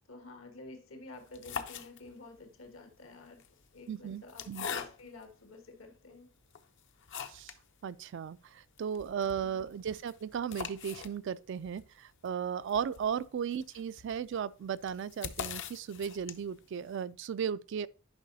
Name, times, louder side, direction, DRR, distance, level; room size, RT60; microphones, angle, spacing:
voice 1, 0.1-3.4 3.7-6.3 9.4-9.6 13.1-13.3, left 2 dB, 80° left, 1.5 m, -50 dB
sound 1, 1.2-2.4 3.3-5.3 5.9-6.0 6.5-7.7 8.0-8.1 8.3-8.4 8.8-16.7, left 7 dB, 60° left, 0.6 m, -43 dB
voice 2, 3.9-4.7 7.3-7.5 7.8-17.9, right 7 dB, 65° right, 0.3 m, -36 dB
10.5 x 5.3 x 2.7 m
head